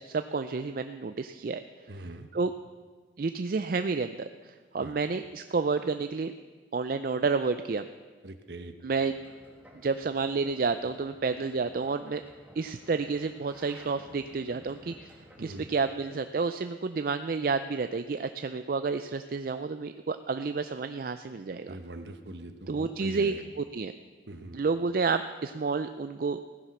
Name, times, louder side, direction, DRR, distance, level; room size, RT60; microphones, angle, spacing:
voice 1, 0.0-1.6 2.3-2.5 3.2-6.3 6.7-7.9 8.8-9.1 9.7-12.2 12.6-21.8 22.7-23.9 24.5-26.4, right 4 dB, 50° right, 10 dB, 0.4 m, -30 dB
voice 2, 1.9-2.3 4.8-5.0 8.2-8.7 15.4-15.7 21.7-23.4 24.3-24.6, right 2 dB, 65° right, 8 dB, 1.1 m, -42 dB
sound 1, 8.9-15.7, equal, 10° right, 2.0 m, -54 dB
16.0 x 10.0 x 6.1 m, 1.4 s
head